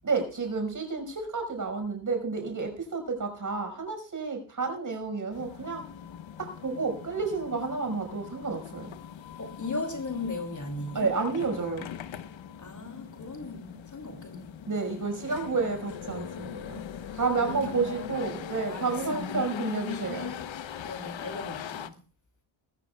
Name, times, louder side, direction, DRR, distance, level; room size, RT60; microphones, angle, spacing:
voice 1, 0.0-5.9 6.4-9.0 10.9-11.9 14.7-16.8 17.1-20.3, right 4 dB, 40° right, 5.5 m, -30 dB
sound 1, 5.3-21.9, left 9 dB, 65° left, 1.0 m, -41 dB
voice 2, 9.4-11.1 12.6-14.5 17.3-19.3 20.8-22.0, left 2 dB, 35° left, 2.6 m, -37 dB
21.5 x 14.0 x 2.4 m
wide cardioid pair, 125°, 50 cm